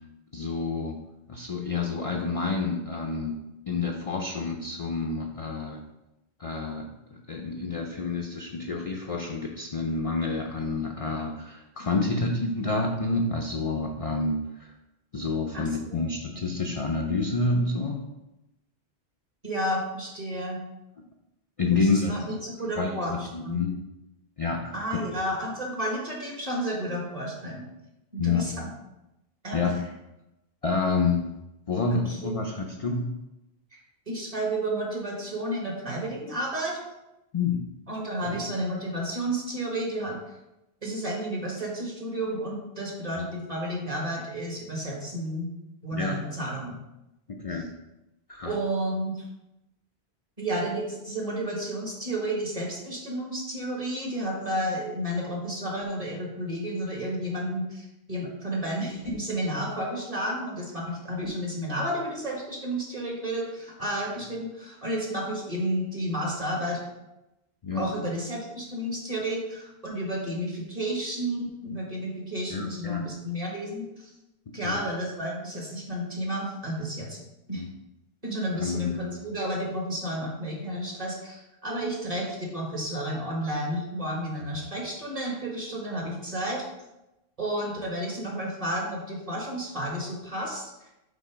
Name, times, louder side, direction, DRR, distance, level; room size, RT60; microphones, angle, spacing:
voice 1, 0.3-1.0 1.3-3.4 3.7-5.8 6.4-14.7 15.1-18.0 21.6-22.2 22.8-23.8 24.4-25.0 28.2-28.5 29.5-29.8 30.6-31.3 31.7-33.1 37.3-37.6 38.3-38.4 43.2-43.3 45.9-46.2 47.3-47.7 48.3-48.6 67.6-67.9 72.5-73.0 74.6-74.8 77.6-77.7 78.5-79.1, left 3 dB, 45° left, 2 dB, 0.5 m, -28 dB
voice 2, 15.5-16.0 19.4-20.6 21.7-23.6 24.7-27.7 28.1-28.7 29.4-29.6 32.1-32.4 33.7-33.8 34.1-36.8 37.9-40.2 40.8-45.5 45.8-46.8 48.4-49.2 50.4-66.8 67.7-74.1 74.5-77.2 77.5-77.6 78.2-86.6 87.4-90.6, right 1 dB, 35° right, -2 dB, 1.7 m, -31 dB
5.7 x 3.9 x 5.0 m, 0.93 s
omnidirectional pair, 1.1 m